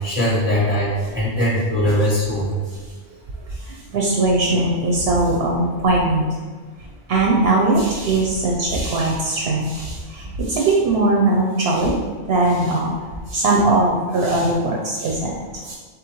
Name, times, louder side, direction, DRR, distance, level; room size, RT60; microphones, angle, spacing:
voice 1, 0.0-2.5, equal, 10° right, -6 dB, 0.9 m, -20 dB
voice 2, 3.5-6.3 7.1-11.9 12.3-12.9 13.3-15.8, right 2 dB, 65° right, -1 dB, 0.8 m, -20 dB
4.0 x 3.8 x 3.0 m, 1.5 s
omnidirectional pair, 1.2 m